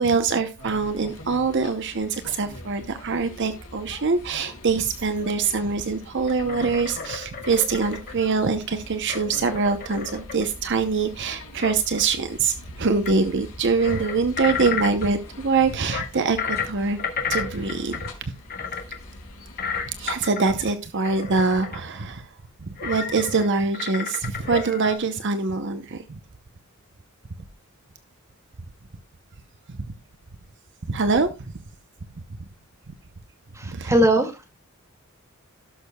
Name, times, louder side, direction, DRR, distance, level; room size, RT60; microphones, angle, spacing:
voice 1, 0.0-17.0 17.3-18.3 19.9-22.3 22.6-26.2 29.7-29.8 30.9-31.3 33.6-34.0, right 4 dB, 60° right, 9 dB, 0.8 m, -24 dB
sound 1, 0.6-20.2, left 1 dB, 85° left, 4.5 m, -43 dB
sound 2, 6.3-8.2 9.1-10.6 11.4-12.1 13.1-13.2 13.4-13.5 13.8-15.1 15.9-18.2 18.5-19.0 19.6-20.8 21.0-21.8 22.8-23.5 23.7-25.0, left 6 dB, 45° left, 1.8 m, -32 dB
voice 2, 33.5-34.5, right 1 dB, 15° right, 3 dB, 2.2 m, -20 dB
17.5 x 6.5 x 2.3 m, 0.26 s
head